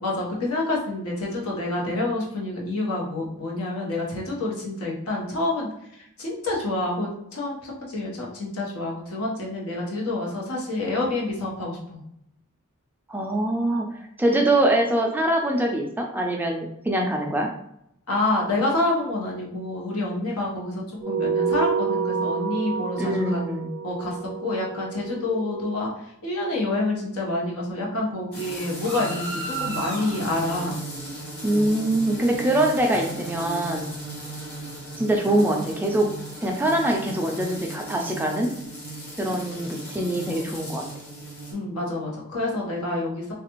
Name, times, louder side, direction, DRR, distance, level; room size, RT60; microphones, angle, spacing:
voice 1, 0.0-12.0 18.1-23.4 23.8-24.2 24.4-30.8 41.5-43.3, left 2 dB, 85° left, -3 dB, 1.0 m, -28 dB
voice 2, 13.1-17.5 23.0-23.7 31.4-33.8 35.0-36.1 36.4-38.5 39.2-40.8, right 1 dB, 10° right, 1 dB, 0.3 m, -23 dB
sound 1, 21.0-25.8, right 6 dB, 70° right, 0.5 m, -28 dB
sound 2, 28.3-41.5, right 2 dB, 50° left, 1.1 m, -35 dB
3.3 x 2.4 x 2.9 m, 0.77 s
head